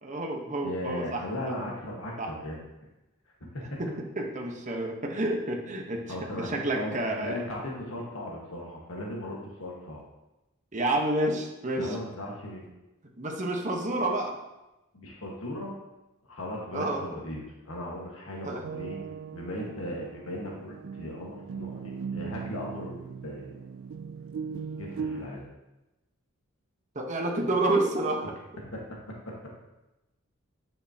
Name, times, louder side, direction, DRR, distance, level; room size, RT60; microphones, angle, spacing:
voice 1, 0.0-1.2 2.2-2.3 3.8-7.4 10.7-12.0 13.2-14.4 16.7-17.0 18.4-18.6 26.9-28.4, right 2 dB, 35° right, 1 dB, 1.1 m, -29 dB
voice 2, 0.6-2.6 3.5-3.8 6.1-7.0 7.2-10.0 11.8-12.7 14.9-15.7 16.3-19.0 19.3-23.6 24.8-25.5 28.6-29.0 29.2-29.3, left 1 dB, 65° left, -2 dB, 1.5 m, -37 dB
sound 1, 18.6-25.3, right 6 dB, 65° right, 0.4 m, -39 dB
9.0 x 6.4 x 2.9 m, 1.0 s
head